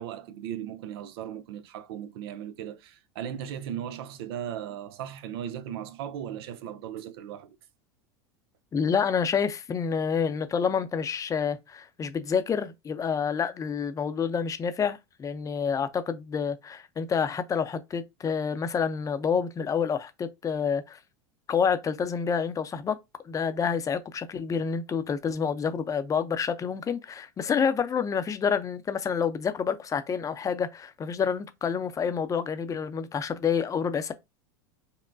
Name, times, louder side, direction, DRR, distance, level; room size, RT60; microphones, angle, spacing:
voice 1, 0.0-7.6, right 10 dB, 70° right, 0.5 m, -37 dB
voice 2, 8.7-21.0 21.5-23.0 23.3-34.1, left 6 dB, 25° left, 0.6 m, -28 dB
5.3 x 2.1 x 2.6 m
hypercardioid pair, 100°, 13 cm